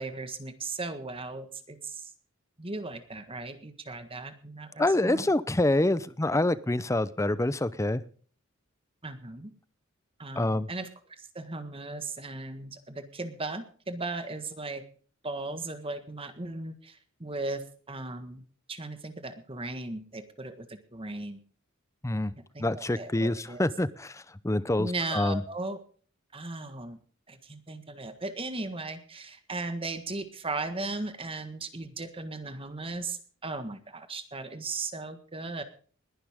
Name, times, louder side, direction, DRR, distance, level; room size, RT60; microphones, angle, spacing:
voice 1, 0.0-2.1 2.6-5.3 9.0-9.5 10.2-10.9 11.2-14.8 15.2-18.4 18.7-21.4 22.5-23.6 24.8-25.8 26.3-27.0 27.3-35.6, right 3 dB, 25° right, 9 dB, 1.6 m, -37 dB
voice 2, 4.8-8.0 10.4-10.7 22.0-22.3 22.6-25.4, left 1 dB, 15° left, 16 dB, 0.7 m, -26 dB
20.5 x 11.0 x 3.6 m, 0.43 s
head